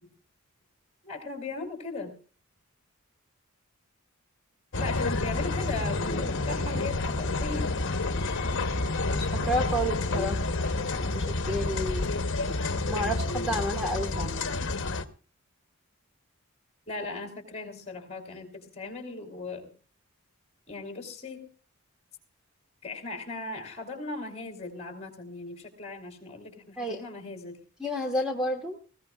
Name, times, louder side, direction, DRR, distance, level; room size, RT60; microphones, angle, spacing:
voice 1, 1.0-2.1 4.7-7.9 16.9-19.7 20.7-21.5 22.8-27.6, left 3 dB, 30° left, 3 dB, 3.6 m, -38 dB
sound 1, 4.7-15.0, left 3 dB, 60° left, 1.0 m, -29 dB
voice 2, 9.1-10.4 11.1-12.1 12.9-14.3 26.8-27.0 27.8-28.8, equal, 5° right, 2 dB, 1.4 m, -30 dB
20.0 x 16.5 x 2.4 m, 0.38 s
head